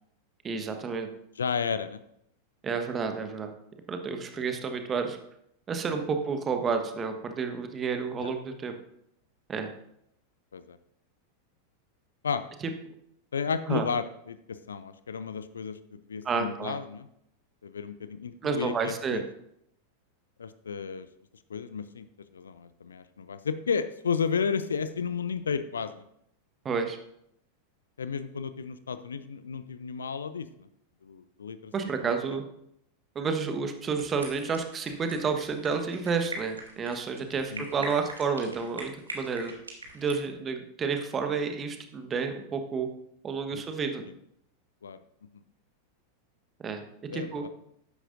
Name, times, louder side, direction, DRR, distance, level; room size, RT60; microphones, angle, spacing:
voice 1, 0.4-1.1 2.6-3.5 3.9-5.2 5.7-8.7 9.5-9.7 12.6-12.7 13.7-13.8 16.2-16.8 18.4-19.2 26.6-27.0 31.7-32.4 33.1-39.5 39.9-42.9 43.2-44.0 46.6-46.8 47.1-47.4, right 5 dB, 20° right, 6 dB, 1.3 m, -30 dB
voice 2, 1.4-2.0 4.3-4.4 8.2-8.3 10.5-10.8 12.2-12.4 13.3-17.1 17.6-19.2 20.4-21.1 21.5-22.1 22.3-26.1 28.0-30.7 31.0-31.7 32.0-32.4 37.5-37.9 43.5-43.6 44.8-45.0 47.1-47.5, left 6 dB, 70° left, 13 dB, 0.5 m, -33 dB
sound 1, 33.8-40.2, right 2 dB, 75° right, 2.0 m, -42 dB
13.0 x 9.9 x 2.6 m, 0.75 s
figure-of-eight pair, 90°, 0 cm